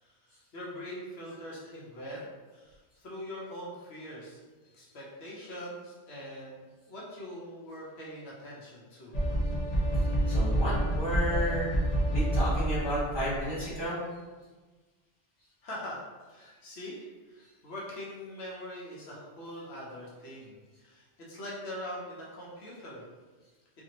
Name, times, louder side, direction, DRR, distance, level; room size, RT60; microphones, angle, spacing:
voice 1, 0.0-4.4 4.7-9.1 15.6-23.0, equal, 80° left, -5 dB, 1.0 m, -43 dB
sound 1, 9.1-13.6, right 1 dB, 50° left, 0.6 m, -28 dB
voice 2, 10.3-11.7 12.1-14.0, equal, 25° left, -10 dB, 1.2 m, -32 dB
2.6 x 2.5 x 2.8 m, 1.3 s
omnidirectional pair, 1.1 m